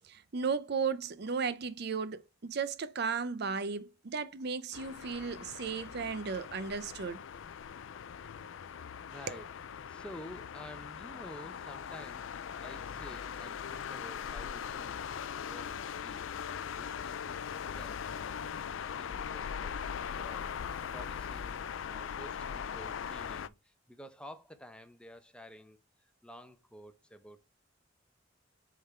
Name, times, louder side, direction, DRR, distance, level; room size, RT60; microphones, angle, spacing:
voice 1, 0.1-7.2 9.3-9.4, right 5 dB, 55° right, 0.6 m, -35 dB
sound 1, 4.7-23.5, left 7 dB, 80° left, 0.4 m, -40 dB
voice 2, 9.1-9.5 9.9-15.1 15.3-25.8 26.2-27.4, equal, 5° left, 0.6 m, -51 dB
6.8 x 3.7 x 4.4 m
head